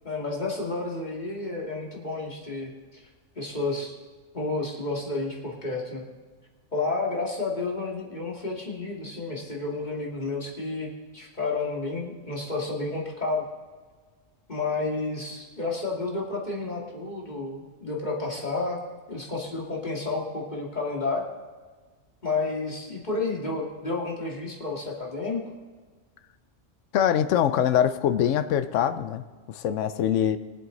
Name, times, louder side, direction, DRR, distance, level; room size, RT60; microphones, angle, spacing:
voice 1, 0.0-3.0 3.4-3.9 4.3-6.0 6.7-13.4 14.5-18.8 19.1-21.2 22.2-25.4 27.3-27.4, left 3 dB, 35° left, 2.4 m, -31 dB
voice 2, 26.9-30.4, left 9 dB, 70° left, 1.0 m, -24 dB
22.5 x 7.7 x 4.0 m
omnidirectional pair, 1.3 m